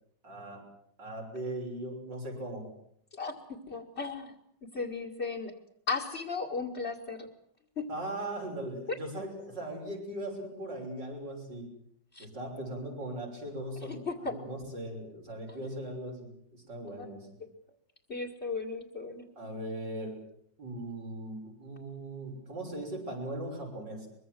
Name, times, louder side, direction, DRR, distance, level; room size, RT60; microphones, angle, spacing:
voice 1, 0.2-0.6 1.0-2.7 7.9-11.7 12.2-17.3 19.4-20.2 20.6-24.1, right 1 dB, 75° right, 2 dB, 7.0 m, -39 dB
voice 2, 3.1-4.3 4.7-5.5 5.9-7.3 7.8-7.9 12.1-12.3 14.1-14.3 16.9-17.0 18.1-19.2, left 4 dB, 35° left, 5 dB, 2.4 m, -35 dB
23.5 x 23.0 x 7.7 m, 0.69 s
omnidirectional pair, 1.9 m